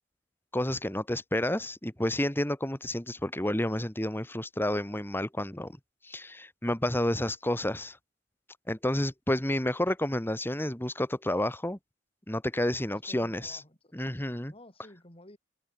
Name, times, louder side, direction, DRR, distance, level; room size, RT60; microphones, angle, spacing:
voice 1, 0.5-5.7 6.1-8.0 8.7-11.8 12.3-13.6 13.9-14.5, left 1 dB, 10° left, 1.8 m, -30 dB
voice 2, 12.8-14.2 14.5-15.4, left 1 dB, 30° left, 5.3 m, -53 dB
head